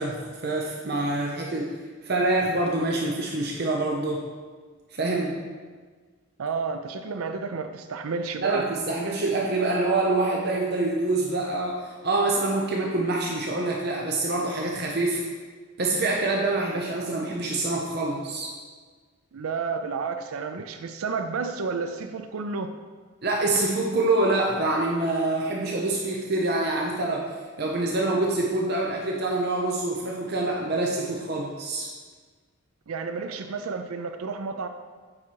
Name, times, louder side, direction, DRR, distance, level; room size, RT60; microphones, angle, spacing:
voice 1, 0.0-1.7 2.0-4.2 4.9-5.4 8.4-15.2 15.8-18.5 23.2-31.9, right 2 dB, 50° right, -1 dB, 0.8 m, -26 dB
voice 2, 6.4-8.7 19.3-22.7 32.9-34.7, right 4 dB, 85° right, 8 dB, 0.5 m, -31 dB
8.5 x 4.8 x 4.6 m, 1.5 s
head